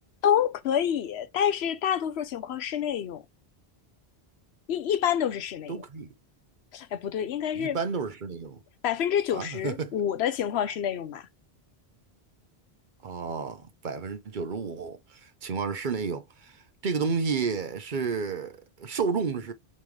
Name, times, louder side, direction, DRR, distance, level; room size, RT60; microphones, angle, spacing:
voice 1, 0.2-3.2 4.7-5.8 6.7-7.8 8.8-11.2, left 9 dB, 85° left, 0.9 m, -27 dB
voice 2, 5.7-6.1 7.5-8.6 9.3-9.9 13.0-16.6 16.8-19.5, right 5 dB, 55° right, 0.8 m, -31 dB
5.3 x 3.2 x 3.1 m
omnidirectional pair, 1.1 m